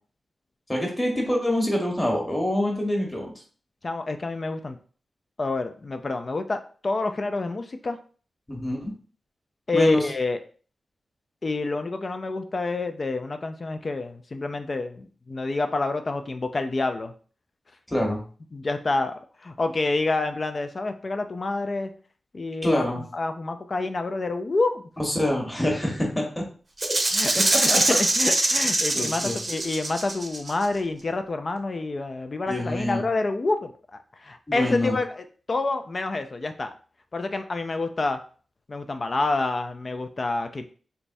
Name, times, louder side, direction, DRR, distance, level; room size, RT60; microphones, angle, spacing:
voice 1, 0.7-3.3 8.5-8.9 9.7-10.0 17.9-18.2 22.6-23.0 25.0-26.4 27.3-27.8 28.9-29.4 32.5-33.0 34.5-34.9, left 1 dB, 10° left, -1 dB, 1.1 m, -26 dB
voice 2, 3.8-4.8 5.4-8.0 9.7-10.4 11.4-17.1 18.5-21.9 22.3-24.9 27.1-36.7 37.1-38.2 38.7-40.7, left 3 dB, 35° left, 8 dB, 0.3 m, -28 dB
Rattle (instrument), 26.8-30.6, right 2 dB, 35° right, 0.7 m, -23 dB
4.0 x 3.4 x 2.6 m, 0.41 s
wide cardioid pair, 135°, 0 cm